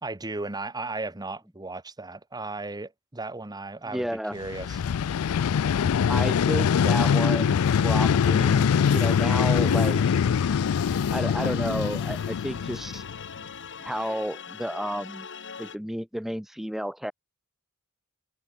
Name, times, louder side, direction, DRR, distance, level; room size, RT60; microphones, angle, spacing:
voice 1, 0.0-4.8, right 3 dB, 20° right, 1.3 m, -35 dB
voice 2, 3.8-4.4 6.1-10.2 11.1-13.0 13.8-15.3 15.6-17.1, equal, ahead, 0.5 m, -32 dB
Vehicle, 4.4-13.4, left 7 dB, 80° left, 0.4 m, -23 dB
sound 1, 6.7-15.8, left 6 dB, 55° left, 2.6 m, -41 dB
sound 2, 8.0-13.7, right 1 dB, 45° right, 5.9 m, -62 dB
head